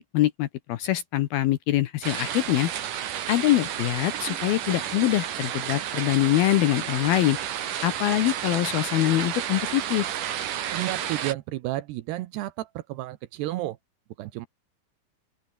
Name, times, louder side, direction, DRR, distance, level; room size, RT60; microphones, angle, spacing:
voice 1, 0.0-2.7 3.3-7.4 7.8-10.1, left 15 dB, 75° left, 2.3 m, -24 dB
sound 1, 2.0-11.3, right 10 dB, 55° right, 2.9 m, -31 dB
voice 2, 10.7-13.8 14.2-14.5, right 16 dB, 75° right, 2.7 m, -32 dB
open air
omnidirectional pair, 5.3 m